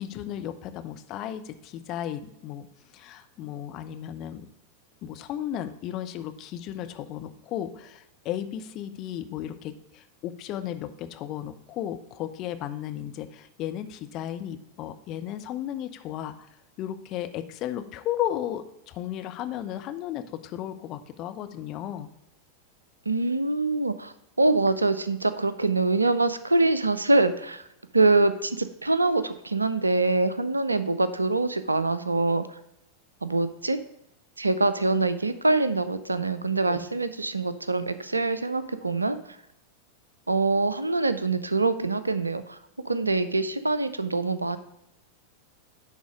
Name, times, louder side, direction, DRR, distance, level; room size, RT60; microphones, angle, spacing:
voice 1, 0.0-2.7 2.9-4.5 5.0-16.3 16.8-22.1 36.7-36.9, left 11 dB, 35° left, 8 dB, 0.6 m, -34 dB
voice 2, 23.1-27.6 27.9-32.5 33.2-33.8 34.4-39.2 40.3-42.6 42.9-44.6, right 3 dB, 80° right, 13 dB, 0.4 m, -24 dB
10.0 x 3.6 x 5.0 m, 0.84 s
figure-of-eight pair, 90°, 0 cm